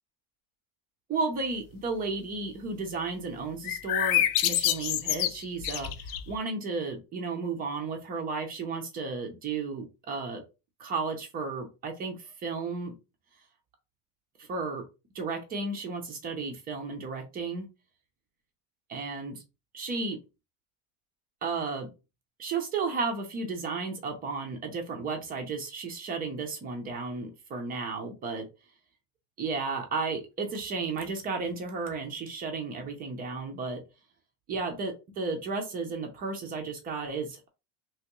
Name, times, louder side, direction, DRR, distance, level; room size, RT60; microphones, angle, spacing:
voice 1, 1.1-10.4 10.8-12.9 14.4-14.8 15.1-17.7 18.9-19.4 19.7-20.2 21.4-21.9 22.4-28.5 29.4-33.8 34.5-37.5, right 4 dB, 20° right, 3 dB, 0.4 m, -33 dB
sound 1, 3.6-6.4, left 12 dB, 65° left, 0.5 m, -27 dB
3.4 x 3.0 x 2.9 m, 0.28 s
supercardioid pair, 160°, 48 cm